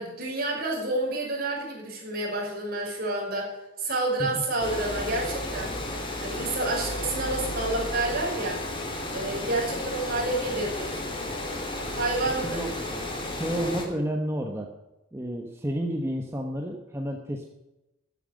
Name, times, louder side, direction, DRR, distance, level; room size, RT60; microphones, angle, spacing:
voice 1, 0.0-3.5 3.8-5.7 6.2-8.6 9.1-10.9 11.8-12.6, right 2 dB, 45° right, -2 dB, 5.8 m, -29 dB
Water, 4.6-13.9, left 1 dB, 25° left, 2.9 m, -33 dB
voice 2, 12.1-12.9 13.3-14.7 15.1-17.5, equal, 15° right, 2 dB, 1.1 m, -31 dB
14.0 x 9.1 x 6.5 m, 0.97 s
head